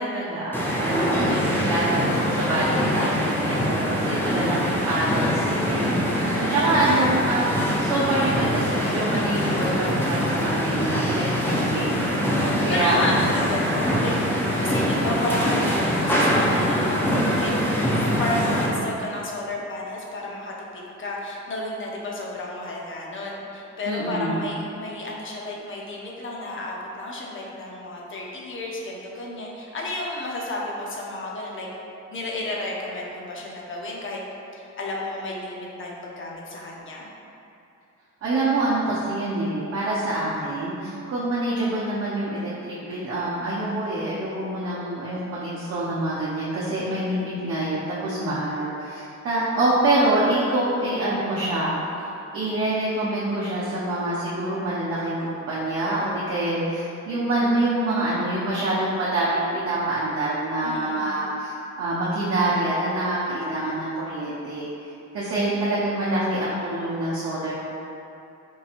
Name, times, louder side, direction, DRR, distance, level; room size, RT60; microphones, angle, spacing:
voice 1, 0.0-6.1 6.5-7.5 7.8-12.0 12.6-13.0 23.8-24.4 38.2-51.7 52.3-64.7 65.1-67.6, right 2 dB, 50° right, -9 dB, 0.8 m, -26 dB
sound 1, 0.5-18.8, equal, 5° left, 0.5 m, -23 dB
voice 2, 6.2-6.7 11.9-17.5 18.0-31.7 32.1-34.2 34.5-37.1 46.8-47.3 60.6-61.2 65.3-65.5, left 2 dB, 40° left, -3 dB, 0.7 m, -32 dB
4.6 x 2.7 x 2.5 m, 2.7 s
cardioid pair, 90°, 30 cm